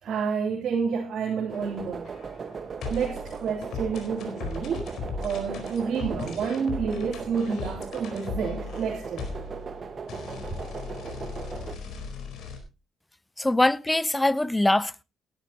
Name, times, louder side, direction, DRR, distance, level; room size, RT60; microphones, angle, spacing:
voice 1, 0.0-2.1 2.9-4.9 5.2-9.3, right 6 dB, 65° right, 3.2 m, -29 dB
sound 1, 1.3-12.6, left 4 dB, 75° left, 4.4 m, -38 dB
sound 2, 1.5-11.8, right 5 dB, 45° right, 1.5 m, -38 dB
voice 2, 13.4-15.0, left 1 dB, 10° left, 0.6 m, -23 dB
18.0 x 11.5 x 2.9 m
cardioid pair, 90°, 0 cm